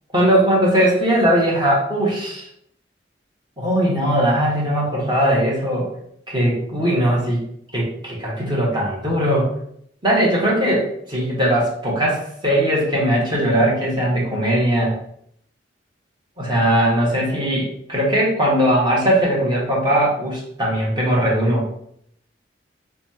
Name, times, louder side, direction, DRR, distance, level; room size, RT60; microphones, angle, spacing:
voice 1, 0.1-2.5 3.6-5.9 6.3-7.4 7.7-9.5 10.0-14.9 16.4-21.6, right 1 dB, 25° right, -4 dB, 1.2 m, -19 dB
3.1 x 2.3 x 4.1 m, 0.69 s
head